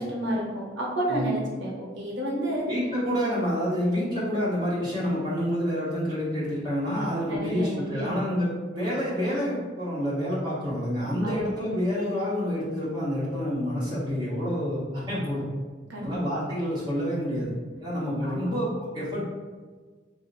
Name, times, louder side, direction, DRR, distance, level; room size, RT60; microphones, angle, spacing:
voice 1, 0.0-2.7 7.3-8.1 11.2-11.5 15.9-16.2 17.3-17.4 18.2-18.4, right 1 dB, 90° right, -3 dB, 0.7 m, -30 dB
voice 2, 2.7-15.4 16.0-17.5 17.8-19.2, equal, 20° right, -9 dB, 1.0 m, -28 dB
2.8 x 2.0 x 4.0 m, 1.4 s
head